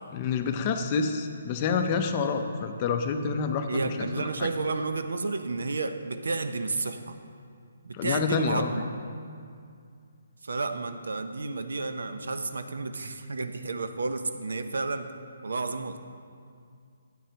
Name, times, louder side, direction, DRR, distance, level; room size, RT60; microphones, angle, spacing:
voice 1, 0.1-4.5 7.9-8.7, left 5 dB, 25° left, 6 dB, 0.5 m, -28 dB
voice 2, 3.7-7.2 7.8-8.8 10.4-15.1 15.4-16.0, right 3 dB, 85° right, 9 dB, 0.6 m, -31 dB
12.5 x 8.9 x 2.9 m, 2.3 s
hypercardioid pair, 165°, 0 cm